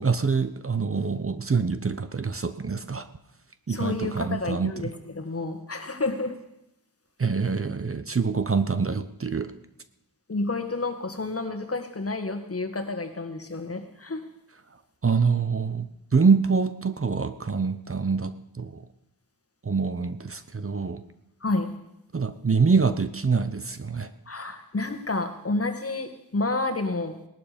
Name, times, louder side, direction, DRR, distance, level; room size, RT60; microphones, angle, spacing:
voice 1, 0.0-3.1 3.7-4.9 7.2-9.5 15.0-18.8 19.6-21.0 22.1-24.1, right 5 dB, 40° right, 11 dB, 0.8 m, -25 dB
voice 2, 3.7-4.9 5.2-6.4 10.3-14.3 21.4-21.8 24.3-27.2, left 2 dB, 40° left, 6 dB, 1.8 m, -30 dB
18.5 x 12.0 x 5.2 m, 0.86 s
wide cardioid pair, 60°, 36 cm